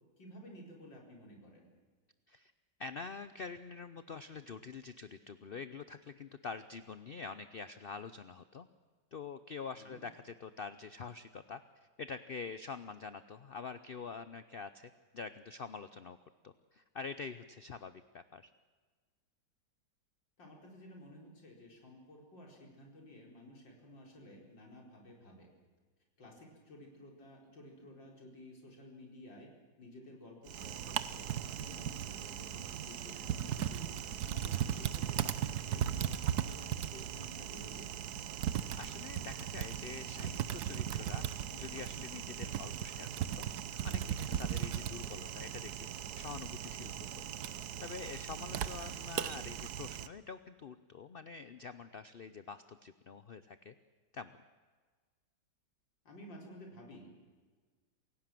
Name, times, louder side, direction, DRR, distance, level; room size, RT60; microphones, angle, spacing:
voice 1, 0.2-1.7 9.7-10.0 20.4-25.5 26.2-29.5 29.8-36.6 36.9-38.0 48.4-48.6 56.1-57.1, left 1 dB, 80° left, 0 dB, 5.3 m, -53 dB
voice 2, 2.8-8.7 9.1-11.6 12.0-16.2 16.4-18.5 38.7-43.1 43.3-43.4 43.8-47.2 47.8-53.7 54.1-54.4, left 5 dB, 60° left, 12 dB, 0.6 m, -46 dB
Typing, 30.5-50.1, right 10 dB, 65° right, 1.3 m, -38 dB
28.5 x 16.5 x 7.7 m, 1.5 s
omnidirectional pair, 2.0 m